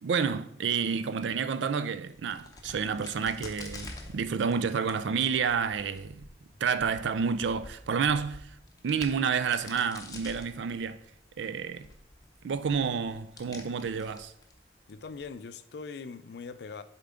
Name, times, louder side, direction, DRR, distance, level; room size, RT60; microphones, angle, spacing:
voice 1, 0.0-6.3 6.6-8.5 8.8-11.0 11.4-11.9 12.4-14.3, right 6 dB, 85° right, 0.4 m, -29 dB
Crack, 2.1-15.3, left 2 dB, 20° left, 0.7 m, -49 dB
voice 2, 14.9-16.8, left 5 dB, 65° left, 0.4 m, -41 dB
6.9 x 4.4 x 3.7 m
head